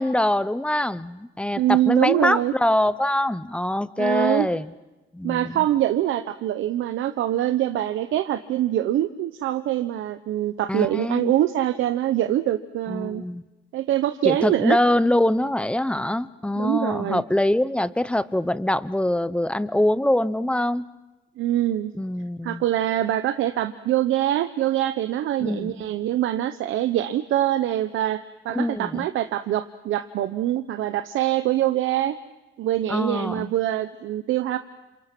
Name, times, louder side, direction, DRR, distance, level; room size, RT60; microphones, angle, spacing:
voice 1, 0.0-4.7 5.1-5.6 10.7-11.3 12.9-13.4 14.2-20.8 22.0-22.6 25.4-25.8 28.5-29.0 32.9-33.5, left 1 dB, 5° left, 15 dB, 0.9 m, -24 dB
voice 2, 1.6-2.5 4.0-4.5 5.2-13.2 13.7-14.8 16.6-17.2 21.4-21.9 22.4-32.2 32.6-34.6, right 13 dB, 85° right, 10 dB, 0.9 m, -24 dB
28.5 x 27.0 x 6.1 m, 1.1 s
cardioid pair, 90°, 20 cm